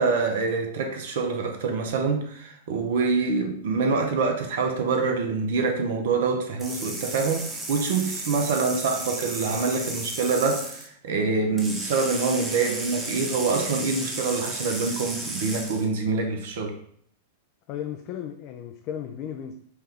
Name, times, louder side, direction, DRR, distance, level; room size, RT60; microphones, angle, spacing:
voice 1, 0.0-16.8, right 4 dB, 60° right, 0.6 m, -25 dB
sound 1, 6.6-10.9 11.6-15.9, right 2 dB, 15° right, 0.9 m, -34 dB
voice 2, 17.7-19.6, left 9 dB, 45° left, 0.3 m, -35 dB
4.5 x 2.3 x 3.3 m
figure-of-eight pair, 100°, 0 cm